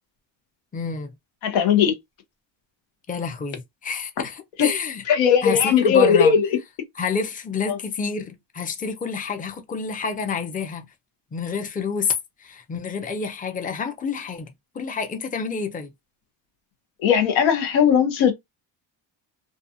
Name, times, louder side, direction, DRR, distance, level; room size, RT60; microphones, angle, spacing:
voice 1, 0.7-1.1 3.1-5.0 5.4-6.3 6.9-10.9 11.3-12.1 12.4-14.5 14.7-15.9, left 5 dB, 20° left, 0.6 m, -28 dB
voice 2, 1.4-1.9 4.6-4.7 5.1-6.5 7.7-7.8 17.0-18.3, left 7 dB, 85° left, 1.0 m, -18 dB
2.4 x 2.3 x 2.7 m
cardioid pair, 85°, 45 cm